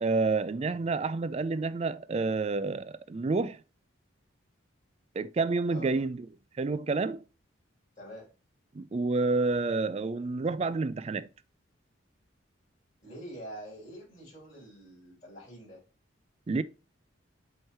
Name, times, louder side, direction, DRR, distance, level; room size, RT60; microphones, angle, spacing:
voice 1, 0.0-3.6 5.2-6.3 6.6-7.2 8.7-11.3 16.5-16.6, right 3 dB, 30° right, 0.3 m, -29 dB
voice 2, 8.0-8.3 13.0-15.8, right 1 dB, 30° left, 4.0 m, -46 dB
7.8 x 3.2 x 4.3 m
head